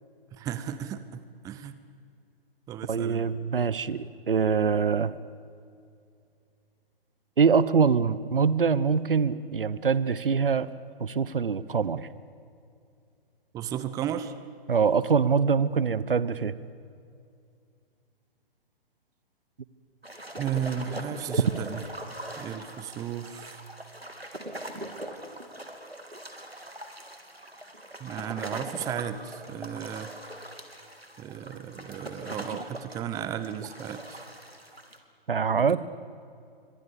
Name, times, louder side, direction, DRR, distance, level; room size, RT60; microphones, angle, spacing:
voice 1, 0.3-1.7 2.7-3.3 13.5-14.3 20.4-21.8 22.4-23.6 28.0-30.1 31.2-34.2 35.5-35.6, right 9 dB, 10° right, 12 dB, 0.8 m, -34 dB
voice 2, 2.9-5.1 7.4-10.7 11.0-12.1 14.7-16.5 35.3-35.8, right 6 dB, 65° right, 17 dB, 1.3 m, -24 dB
sound 1, 20.0-35.0, right 1 dB, 90° right, 3.4 m, -41 dB
30.0 x 25.0 x 7.0 m, 2.4 s
figure-of-eight pair, 125°, 30 cm